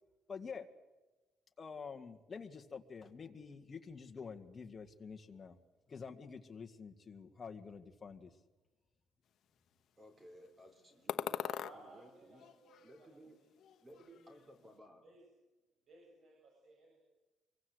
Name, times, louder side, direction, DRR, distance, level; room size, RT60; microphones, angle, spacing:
voice 1, 0.3-0.7 1.6-5.6 5.9-8.3, left 5 dB, 25° left, 6 dB, 1.9 m, -48 dB
voice 2, 10.0-12.5 12.8-13.6 13.8-15.1, equal, 20° right, 6 dB, 3.9 m, -59 dB
sound 1, 11.1-11.8 12.3-13.3 13.6-14.4, left 10 dB, 60° left, 1.1 m, -42 dB
voice 3, 11.3-13.2 13.9-14.3 14.6-14.7 15.0-15.2 15.9-17.0, right 2 dB, 50° right, -1 dB, 7.9 m, -59 dB
26.5 x 23.0 x 8.1 m, 1.1 s
cardioid pair, 155°, 0 cm